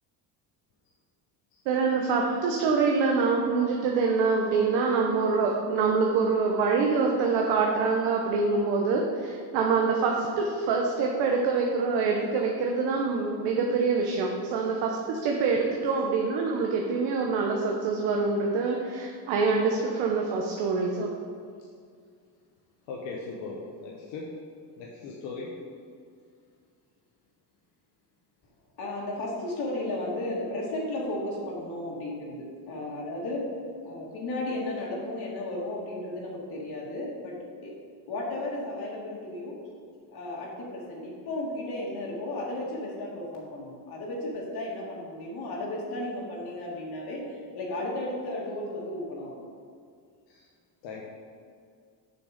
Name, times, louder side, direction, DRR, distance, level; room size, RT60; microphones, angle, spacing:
voice 1, 1.7-21.1, right 4 dB, 85° right, 0 dB, 1.0 m, -25 dB
voice 2, 22.9-24.3 24.8-25.6 50.3-50.5 50.8-51.0, left 4 dB, 90° left, -3 dB, 1.2 m, -39 dB
voice 3, 28.8-33.4 33.8-37.4 37.6-37.7 38.1-39.5 40.1-47.2 47.6-49.3, left 1 dB, 60° left, -3 dB, 2.1 m, -34 dB
6.9 x 6.1 x 5.0 m, 2.2 s
cardioid pair, 130°, 43 cm